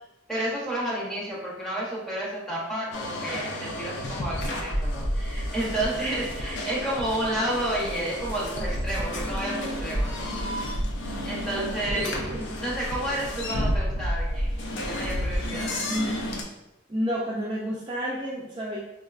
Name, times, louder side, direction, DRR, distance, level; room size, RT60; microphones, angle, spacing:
voice 1, 0.3-10.3 10.6-10.7 11.2-12.1 12.6-14.5 14.8-15.7, right 1 dB, ahead, -6 dB, 0.8 m, -31 dB
sound 1, 2.9-16.4, equal, 60° left, 0.4 m, -30 dB
voice 2, 11.5-12.6 15.9-16.2 16.9-18.8, equal, 25° right, -5 dB, 0.3 m, -31 dB
3.8 x 2.1 x 2.3 m, 0.92 s
head